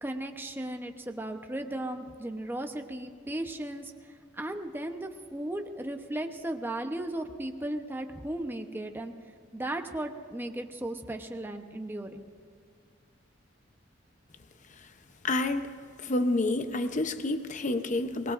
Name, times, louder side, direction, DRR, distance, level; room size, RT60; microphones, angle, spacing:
voice 1, 0.0-3.9 4.3-9.1 9.5-12.1, right 1 dB, 10° right, 5 dB, 0.8 m, -36 dB
voice 2, 15.2-15.7 16.0-18.3, left 2 dB, 40° left, 8 dB, 0.7 m, -28 dB
23.5 x 19.5 x 2.6 m, 2.3 s
head